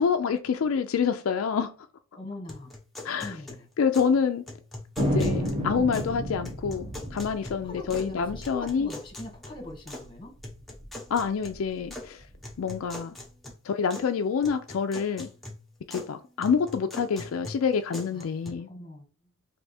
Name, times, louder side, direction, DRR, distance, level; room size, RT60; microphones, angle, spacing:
voice 1, 0.0-1.7 3.0-3.4 3.8-4.4 5.0-8.9 11.1-12.3 12.6-13.2 13.6-15.3 15.9-18.7, left 6 dB, 75° left, 0.4 m, -27 dB
voice 2, 2.2-2.7 3.2-3.7 7.4-10.3 18.1-19.3, left 1 dB, 25° left, 1.3 m, -42 dB
sound 1, 2.5-4.2 4.5-6.2 6.4-8.1 8.4-10.1 10.4-12.1 12.4-14.1 14.4-16.1 16.4-18.5, left 1 dB, ahead, 0.8 m, -43 dB
Thunder, 5.0-9.8 10.0-10.1 10.4-10.9 11.4-12.6, equal, 25° right, 1.1 m, -32 dB
3.4 x 2.7 x 4.1 m
head